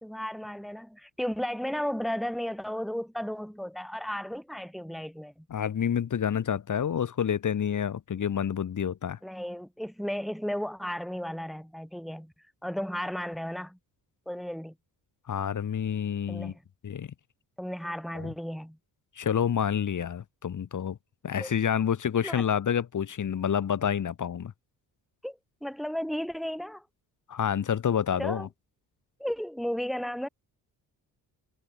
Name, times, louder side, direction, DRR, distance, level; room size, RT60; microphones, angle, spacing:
voice 1, 0.0-5.4 9.2-12.3 12.6-13.8 14.3-14.7 16.3-16.6 17.6-18.8 21.4-21.5 22.2-22.5 25.2-26.8 28.2-28.5 29.2-30.3, equal, ahead, 2.5 m, -34 dB
voice 2, 5.5-9.2 15.3-16.5 16.8-17.1 18.2-18.3 19.2-21.0 21.2-24.5 27.3-28.5, left 8 dB, 50° left, 3.3 m, -28 dB
cardioid pair, 110°, 38 cm